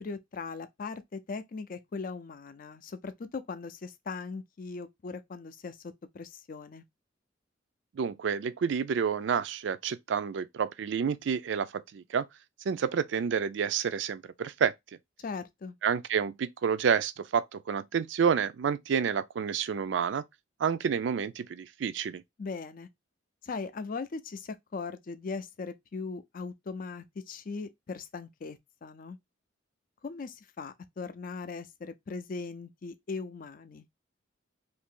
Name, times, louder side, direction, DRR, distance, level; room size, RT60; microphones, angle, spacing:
voice 1, 0.0-6.8 15.2-15.8 22.4-22.9 23.4-29.2 30.0-33.9, left 4 dB, 45° left, 0.4 m, -39 dB
voice 2, 8.0-12.2 12.7-14.7 15.8-20.2 20.6-22.2, right 7 dB, 70° right, 0.4 m, -29 dB
2.8 x 2.6 x 3.6 m
head